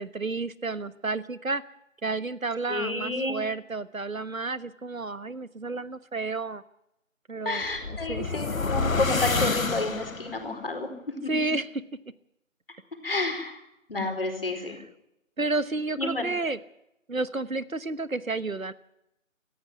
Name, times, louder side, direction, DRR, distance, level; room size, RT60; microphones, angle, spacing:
voice 1, 0.0-1.6 2.0-6.6 7.3-8.3 11.3-11.7 15.4-16.6 17.1-18.7, right 3 dB, 85° right, 16 dB, 1.3 m, -31 dB
voice 2, 2.7-3.4 7.4-10.9 11.2-11.3 13.0-13.6 13.9-14.8 16.0-16.3, left 2 dB, 45° left, 4 dB, 4.6 m, -30 dB
sound 1, 7.6-10.5, left 4 dB, 80° left, 1.1 m, -28 dB
18.5 x 14.5 x 9.5 m, 0.83 s
figure-of-eight pair, 165°, 40 cm